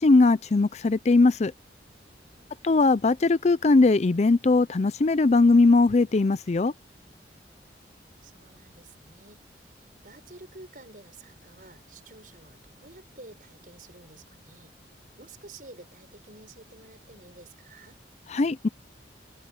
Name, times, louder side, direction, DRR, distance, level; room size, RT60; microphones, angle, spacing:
voice 1, 0.0-1.5 2.6-6.7 18.3-18.7, left 3 dB, 40° left, 0.5 m, -20 dB
voice 2, 2.4-2.7 8.2-14.7 15.2-18.0, right 2 dB, 50° right, 6.3 m, -50 dB
head